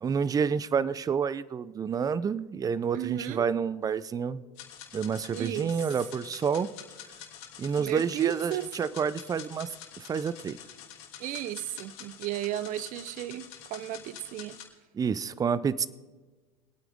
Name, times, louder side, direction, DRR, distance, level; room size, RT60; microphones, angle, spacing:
voice 1, 0.0-4.4 4.9-6.7 7.6-9.7 10.0-10.6 14.9-15.9, right 6 dB, 20° right, 18 dB, 0.5 m, -29 dB
voice 2, 2.9-3.5 5.3-5.7 7.8-8.6 11.2-14.6, right 13 dB, 45° right, 16 dB, 0.8 m, -34 dB
sound 1, 4.6-14.6, left 9 dB, 60° left, 3.0 m, -47 dB
24.0 x 9.1 x 3.7 m, 1.3 s
hypercardioid pair, 100°, 19 cm